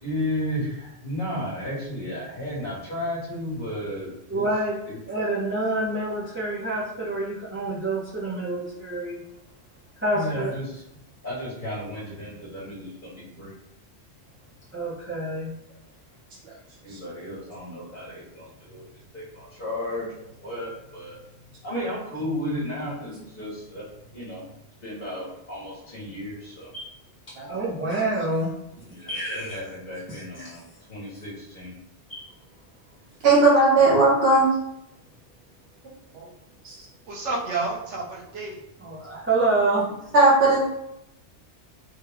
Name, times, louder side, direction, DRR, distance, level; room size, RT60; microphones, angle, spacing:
voice 1, 0.0-4.5 4.9-5.0 10.1-10.8 11.2-13.5 15.7-15.8 16.8-21.2 21.6-23.8 24.1-24.4 24.8-26.7 28.9-31.8, left 1 dB, 45° left, -7 dB, 1.2 m, -33 dB
voice 2, 4.3-4.8 5.1-9.2 10.0-10.5 14.7-15.5 26.7-26.8 27.3-28.5 29.1-29.6 30.1-30.6 32.1-32.2 38.8-39.8, right 2 dB, 15° right, -7 dB, 0.6 m, -27 dB
voice 3, 33.2-34.5 36.1-36.3 36.6-36.7 40.1-40.6, right 2 dB, 65° right, -5 dB, 0.9 m, -17 dB
voice 4, 37.1-38.6, right 3 dB, 80° right, -3 dB, 1.2 m, -30 dB
3.5 x 2.2 x 3.4 m, 0.81 s
omnidirectional pair, 1.2 m